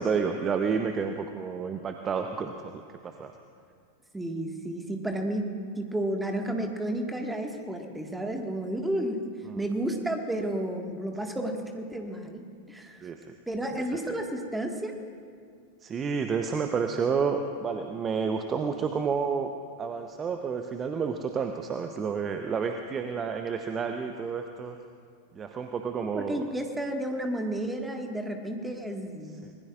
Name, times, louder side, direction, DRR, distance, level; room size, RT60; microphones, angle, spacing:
voice 1, 0.0-3.3 9.5-9.6 13.0-13.2 15.8-19.5 19.8-24.8 25.4-26.4 29.4-29.5, right 5 dB, 25° right, 6 dB, 0.8 m, -30 dB
voice 2, 4.1-5.5 5.8-13.0 13.5-14.9 26.1-29.4, right 1 dB, 5° right, 3 dB, 1.7 m, -32 dB
25.0 x 20.0 x 2.5 m, 2.3 s
figure-of-eight pair, 90°, 0 cm